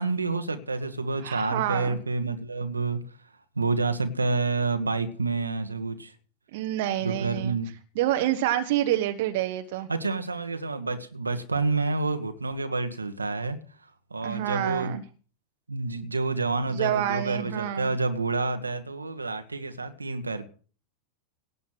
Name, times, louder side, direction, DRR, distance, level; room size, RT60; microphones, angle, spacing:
voice 1, 0.0-3.0 3.5-6.1 7.0-7.7 9.9-13.6 14.1-15.0 15.7-20.5, right 3 dB, 80° right, 1.4 m, -28 dB
voice 2, 1.2-2.0 6.5-7.5 8.0-9.9 14.2-15.0 16.7-17.9, right 13 dB, 50° right, 1.2 m, -27 dB
18.0 x 7.0 x 6.2 m
figure-of-eight pair, 90°, 0 cm